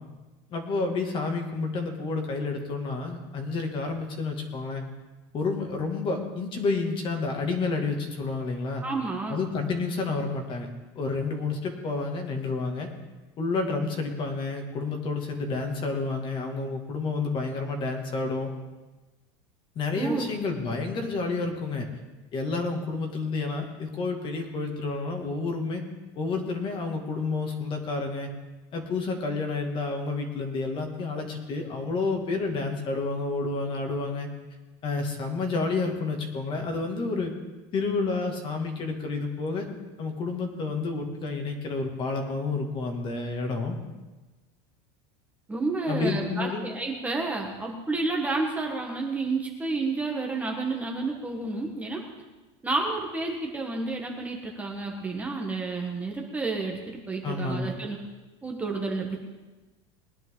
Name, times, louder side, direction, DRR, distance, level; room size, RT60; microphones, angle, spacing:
voice 1, 0.5-4.8 5.3-8.8 9.3-10.7 11.0-12.9 13.4-18.5 19.8-21.9 22.3-25.8 26.2-28.3 28.7-34.3 34.8-37.3 37.7-39.7 40.0-43.8 45.9-46.6 57.2-57.7, left 3 dB, 30° left, 3 dB, 2.0 m, -30 dB
voice 2, 8.8-9.4 19.9-20.3 45.5-52.0 52.6-58.0 58.4-59.2, right 3 dB, 10° right, 0 dB, 1.3 m, -30 dB
20.5 x 10.5 x 3.8 m, 1.2 s
supercardioid pair, 155°, 16 cm